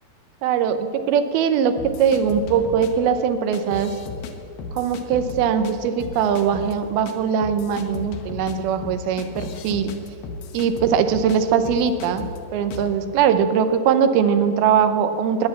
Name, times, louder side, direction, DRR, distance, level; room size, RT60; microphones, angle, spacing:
voice 1, 0.4-3.9 4.7-9.9 10.5-15.5, right 7 dB, 80° right, 10 dB, 2.7 m, -21 dB
sound 1, 1.8-2.9 3.5-4.3 4.6-5.7 6.0-6.7 7.1-7.2 7.4-11.4 11.6-12.4 12.7-12.9, left 4 dB, 70° left, 2.6 m, -34 dB
19.0 x 10.5 x 7.1 m, 2.4 s
omnidirectional pair, 4.5 m